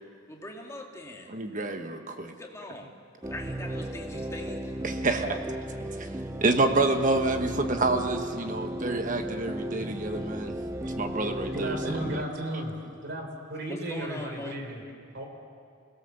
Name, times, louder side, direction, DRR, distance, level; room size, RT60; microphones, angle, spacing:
voice 1, 0.3-1.3 2.4-2.9 3.3-4.7 5.1-5.4 13.7-14.8, left 1 dB, 15° left, 1 dB, 2.1 m, -41 dB
voice 2, 1.3-2.3 4.8-5.4 6.0-6.1 6.4-10.5 10.9-11.8, right 2 dB, 40° right, 6 dB, 1.2 m, -28 dB
sound 1, 3.2-12.2, right 1 dB, 15° right, 0.6 m, -35 dB
voice 3, 11.2-12.8 13.0-14.8 15.1-15.2, right 1 dB, 55° right, 3 dB, 3.7 m, -35 dB
27.5 x 17.5 x 7.0 m, 2.2 s
head